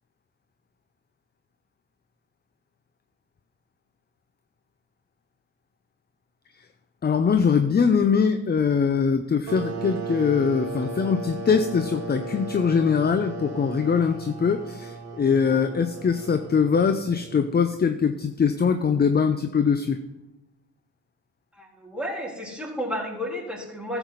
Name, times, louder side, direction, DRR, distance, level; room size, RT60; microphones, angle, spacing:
voice 1, 7.0-20.0, left 6 dB, 30° left, 10 dB, 0.7 m, -22 dB
sound 1, 9.5-17.8, right 3 dB, 50° right, 2.0 m, -36 dB
voice 2, 21.5-24.0, equal, 5° right, -2 dB, 3.6 m, -32 dB
13.0 x 8.0 x 4.1 m, 0.98 s
supercardioid pair, 70°, 34 cm